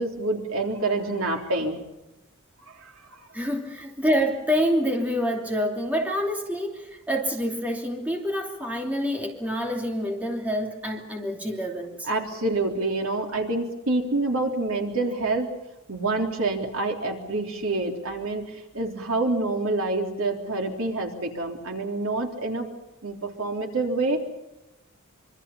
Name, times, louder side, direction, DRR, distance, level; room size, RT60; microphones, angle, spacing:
voice 1, 0.0-1.8 2.7-2.9 12.0-15.5 15.9-22.7 23.0-24.2, right 2 dB, 70° right, 2 dB, 3.5 m, -27 dB
voice 2, 3.3-12.1, equal, 5° right, 1 dB, 2.9 m, -27 dB
25.5 x 25.0 x 5.7 m, 0.95 s
head